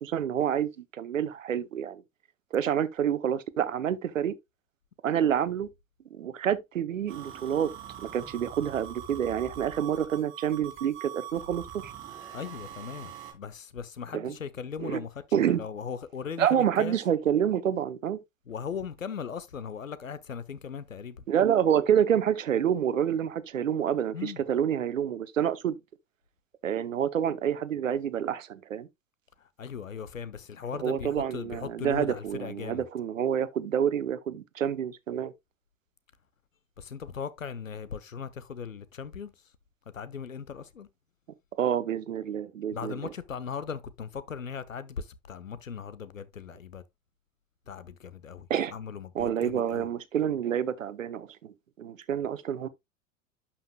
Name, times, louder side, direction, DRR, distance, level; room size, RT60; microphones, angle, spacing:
voice 1, 0.0-2.0 2.5-4.4 5.0-5.7 6.1-7.7 8.0-11.9 14.1-14.3 14.8-15.0 15.3-15.6 16.4-18.2 21.3-25.7 26.6-28.9 30.8-35.3 41.6-42.9 48.5-48.7 49.1-52.7, right 9 dB, 75° right, 0.8 m, -28 dB
sound 1, 7.1-13.3, right 10 dB, 30° right, 3.2 m, -43 dB
voice 2, 12.3-17.0 18.5-21.2 24.1-24.4 29.4-32.9 36.8-39.5 39.9-40.9 42.7-46.8 47.7-49.9, left 6 dB, 85° left, 0.8 m, -38 dB
11.5 x 5.7 x 2.2 m
figure-of-eight pair, 80°, 39 cm